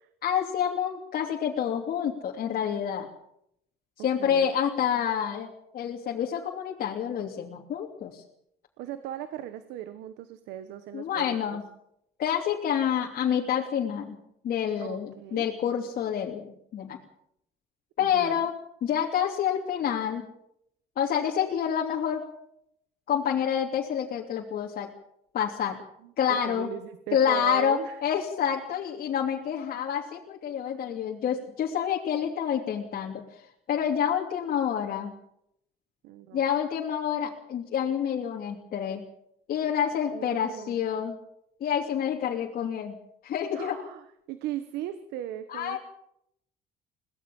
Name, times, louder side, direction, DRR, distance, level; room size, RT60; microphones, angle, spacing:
voice 1, 0.2-3.1 4.0-8.2 10.9-11.6 12.2-14.2 14.4-17.0 18.0-18.5 18.8-20.3 21.0-22.2 23.1-24.9 25.3-25.8 26.2-26.7 27.1-35.1 36.3-39.0 39.5-41.2 41.6-43.0 43.2-43.8 45.5-45.8, left 8 dB, 60° left, -1 dB, 3.0 m, -28 dB
voice 2, 4.0-4.5 8.8-11.6 14.8-15.5 18.0-18.4 26.0-28.0 36.0-36.4 40.1-40.8 43.5-45.8, right 12 dB, 90° right, 11 dB, 1.4 m, -38 dB
22.5 x 17.5 x 7.2 m, 0.75 s
cardioid pair, 110°, 17 cm